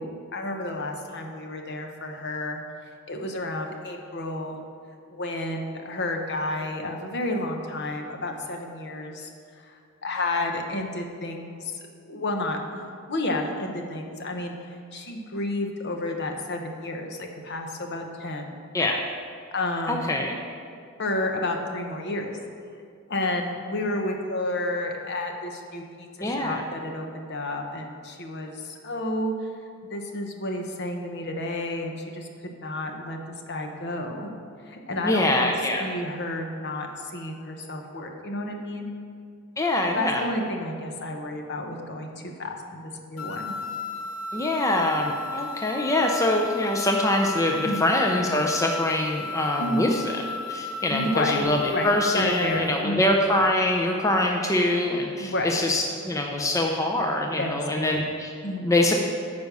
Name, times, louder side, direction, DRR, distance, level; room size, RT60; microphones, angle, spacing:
voice 1, 0.0-2.6 3.1-4.6 5.1-9.3 9.6-11.8 12.1-14.5 14.9-18.6 19.5-20.1 21.0-22.4 23.1-29.3 29.9-33.2 33.5-34.3 34.6-35.5 35.8-38.9 39.9-43.5 47.6-47.9 49.6-49.8 50.9-53.1 55.2-55.7 57.4-57.5 57.8-58.1 58.4-58.7, left 1 dB, 55° left, 3 dB, 1.0 m, -31 dB
voice 2, 19.9-20.4 26.2-26.6 35.0-35.8 39.6-40.2 44.3-58.3 58.6-58.9, left 1 dB, 15° left, 1 dB, 0.6 m, -24 dB
sound 1, 43.2-52.8, left 4 dB, 85° left, 0.7 m, -34 dB
9.5 x 5.3 x 6.8 m, 2.2 s
head